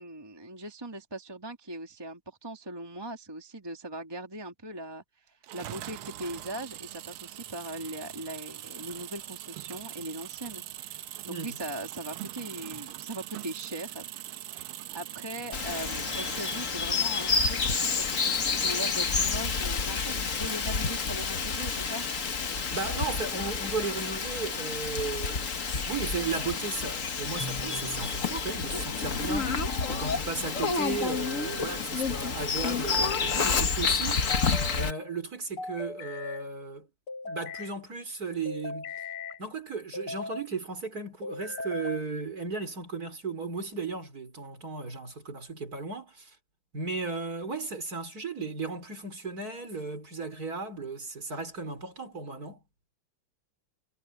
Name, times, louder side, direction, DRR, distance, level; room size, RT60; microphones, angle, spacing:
voice 1, 0.0-11.1 11.4-14.1 14.9-22.1, right 1 dB, 10° right, 2.3 m, -40 dB
sound 1, 5.4-16.8, right 13 dB, 80° right, 1.6 m, -42 dB
voice 2, 11.2-11.6 22.5-34.3 34.7-36.9 37.2-38.9 39.4-46.3 46.7-52.6, right 4 dB, 45° right, 4.5 m, -35 dB
Bird vocalization bird call bird song, 15.5-34.9, left 5 dB, 40° left, 1.7 m, -29 dB
sound 2, 27.4-28.1 29.4-30.2 31.1-31.9 32.9-33.7 34.3-35.0 35.6-36.4 37.1-37.7 38.5-39.4 39.9-40.5 41.2-42.1, left 3 dB, 90° left, 5.7 m, -38 dB
omnidirectional pair, 2.3 m